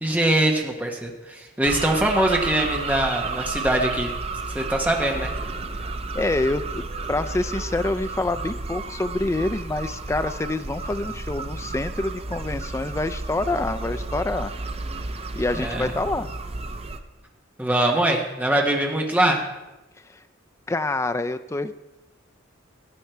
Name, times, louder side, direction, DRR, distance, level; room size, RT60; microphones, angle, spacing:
voice 1, 0.0-4.1 4.5-5.3 15.5-15.9 17.6-19.5, right 1 dB, 10° right, 1 dB, 1.1 m, -22 dB
sound 1, 1.6-17.0, right 3 dB, 30° right, 0.6 m, -32 dB
voice 2, 5.8-14.5 15.3-16.3 20.1-20.2 20.7-21.7, left 2 dB, 15° left, 10 dB, 0.3 m, -27 dB
13.0 x 8.4 x 4.5 m, 1.0 s
head